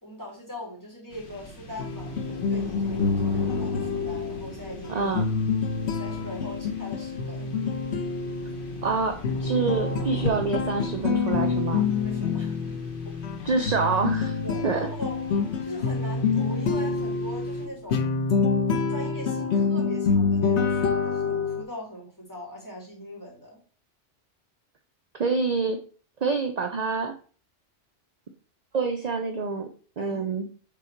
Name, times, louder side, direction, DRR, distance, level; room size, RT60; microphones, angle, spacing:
voice 1, 0.0-5.1 6.0-7.5 12.0-12.7 13.0-13.2 14.4-15.2 15.6-18.1 18.9-23.6 30.0-30.3, left 1 dB, 15° left, -4 dB, 2.6 m, -40 dB
sound 1, 1.1-18.0, left 2 dB, 50° left, 1.3 m, -43 dB
sound 2, 1.8-21.6, left 5 dB, 70° left, 1.2 m, -27 dB
voice 2, 4.9-5.2 8.8-11.9 13.4-14.3 14.6-14.8 25.1-25.8 26.2-27.1 28.7-29.7 30.0-30.5, right 4 dB, 40° right, 4 dB, 0.7 m, -26 dB
7.0 x 3.8 x 4.5 m, 0.40 s
omnidirectional pair, 1.2 m